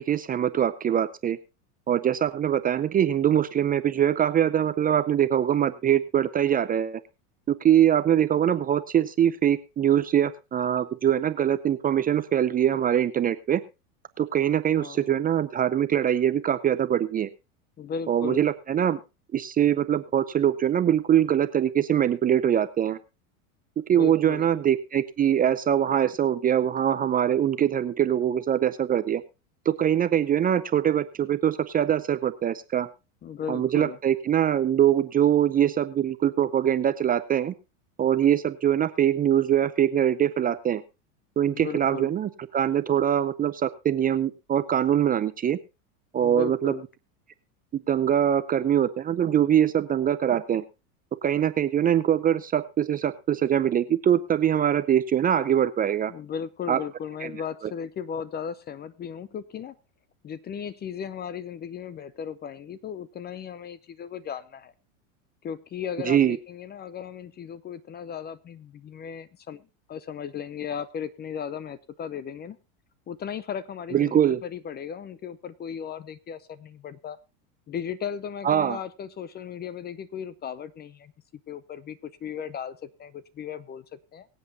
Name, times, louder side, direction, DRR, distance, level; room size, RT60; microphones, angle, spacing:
voice 1, 0.0-1.4 1.9-7.0 7.5-13.6 14.2-17.3 18.1-19.0 19.3-23.0 23.9-29.2 29.7-32.9 33.5-37.5 38.0-40.8 41.4-45.6 46.1-46.7 47.7-50.6 51.2-56.1 56.7-56.8 57.2-57.3 66.0-66.4 73.9-74.4 78.4-78.8, right 10 dB, 20° right, 12 dB, 0.5 m, -23 dB
voice 2, 14.8-15.1 17.8-18.5 23.9-24.5 33.2-34.0 41.5-42.1 46.2-46.8 56.1-59.7 60.2-64.7 65.4-72.6 73.1-77.2 77.7-81.1 81.5-84.3, left 8 dB, 25° left, 18 dB, 0.6 m, -36 dB
23.5 x 7.9 x 2.7 m, 0.27 s
supercardioid pair, 115°, 43 cm